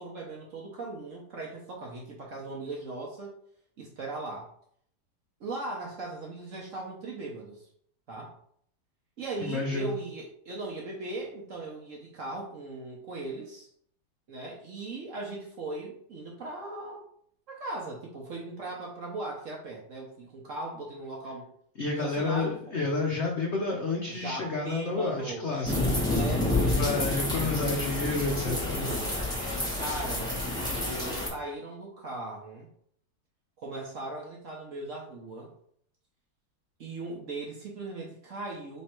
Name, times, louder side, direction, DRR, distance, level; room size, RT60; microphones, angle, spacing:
voice 1, 0.0-3.3 3.8-4.5 5.4-7.7 8.1-8.4 9.2-13.7 14.3-17.0 17.5-21.5 22.0-22.6 24.1-27.2 28.7-29.2 29.8-30.4 30.8-32.7 33.6-35.5 36.8-38.8, right 2 dB, 60° right, -2 dB, 0.9 m, -38 dB
voice 2, 9.4-9.9 21.8-26.0 26.8-28.9, left 3 dB, 85° left, 0 dB, 0.6 m, -30 dB
sound 1, 25.6-31.3, left 2 dB, 5° left, 0.7 m, -29 dB
3.3 x 3.2 x 4.4 m, 0.64 s
omnidirectional pair, 2.1 m